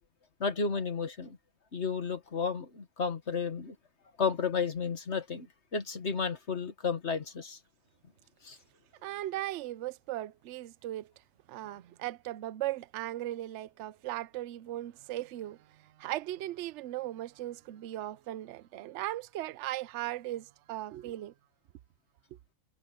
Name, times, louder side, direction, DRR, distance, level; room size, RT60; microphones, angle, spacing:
voice 1, 0.4-1.4 1.7-3.8 4.2-5.5 5.7-7.6 8.4-8.6, left 5 dB, 55° left, 1.8 m, -32 dB
voice 2, 9.0-11.1 11.5-21.3, right 15 dB, 65° right, 0.8 m, -38 dB
omnidirectional pair, 1.4 m